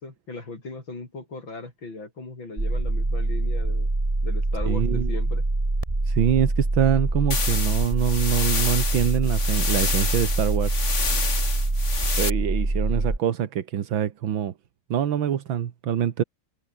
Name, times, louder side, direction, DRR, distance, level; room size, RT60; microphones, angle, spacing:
voice 1, 0.0-3.9 4.2-5.4, left 3 dB, 85° left, 6.8 m, -38 dB
sound 1, 2.6-13.2, right 2 dB, 15° right, 2.4 m, -25 dB
voice 2, 4.7-5.1 6.1-10.8 12.2-14.5 14.9-16.2, right 9 dB, 85° right, 2.1 m, -25 dB
sound 2, 7.3-12.3, left 5 dB, 40° left, 2.2 m, -29 dB
omnidirectional pair, 2.1 m